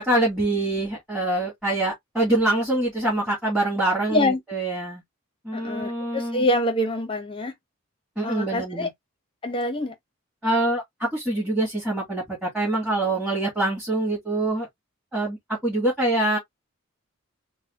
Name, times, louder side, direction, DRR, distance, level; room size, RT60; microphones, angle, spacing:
voice 1, 0.0-5.0 5.4-6.4 8.2-8.9 10.4-14.7 15.1-16.4, right 2 dB, 5° right, 2.0 m, -25 dB
voice 2, 4.1-4.4 5.5-7.5 8.2-8.9 9.4-9.9, left 1 dB, 25° left, 1.0 m, -25 dB
4.1 x 2.4 x 3.5 m
head